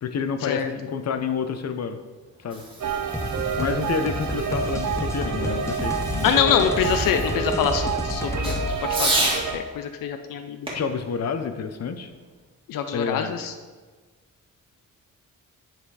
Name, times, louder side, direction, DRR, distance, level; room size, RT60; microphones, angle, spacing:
voice 1, 0.0-2.0 2.4-2.6 3.6-6.3 10.7-12.1 12.9-13.3, left 6 dB, 50° left, 8 dB, 0.7 m, -29 dB
Fireworks, 2.2-9.5 10.6-12.3, right 2 dB, 15° right, 1.9 m, -33 dB
sound 1, 2.8-9.6, right 5 dB, 65° right, 0.8 m, -29 dB
sound 2, 3.1-8.8, left 1 dB, 10° left, 0.8 m, -30 dB
voice 2, 6.2-8.7 9.0-9.3 9.5-10.6 12.7-13.5, left 8 dB, 90° left, 7 dB, 0.5 m, -25 dB
9.3 x 3.3 x 4.7 m, 1.4 s
cardioid pair, 75°, 32 cm